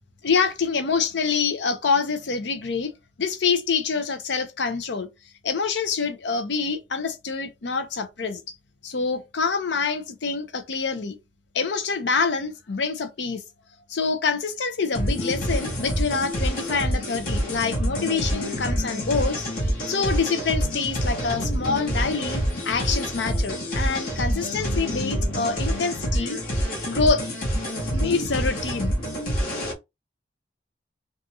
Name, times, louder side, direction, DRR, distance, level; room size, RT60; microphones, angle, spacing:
voice 1, 0.2-2.9 3.2-5.1 5.4-8.4 8.8-11.2 11.5-13.4 13.9-19.5 19.9-27.3 27.9-29.0, left 5 dB, 90° left, 0.6 m, -26 dB
sound 1, 14.9-29.7, equal, 55° left, 1.1 m, -27 dB
2.7 x 2.4 x 2.7 m
head